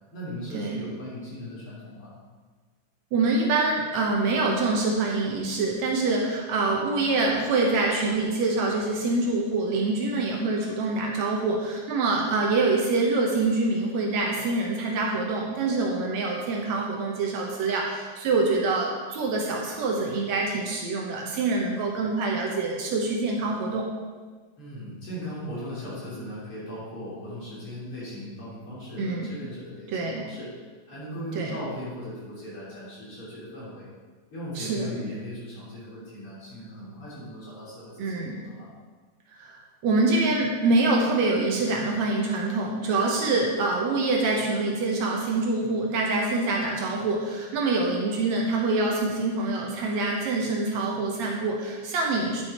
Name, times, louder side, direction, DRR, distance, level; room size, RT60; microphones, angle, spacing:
voice 1, 0.1-2.1 24.6-33.9 34.3-38.7, equal, 45° left, -9 dB, 4.1 m, -38 dB
voice 2, 3.1-23.9 29.0-29.3 29.9-30.3 31.4-31.5 34.6-34.9 38.0-38.5 39.4-52.4, right 3 dB, 70° right, -1 dB, 2.2 m, -25 dB
9.9 x 6.1 x 4.3 m, 1.4 s
omnidirectional pair, 3.4 m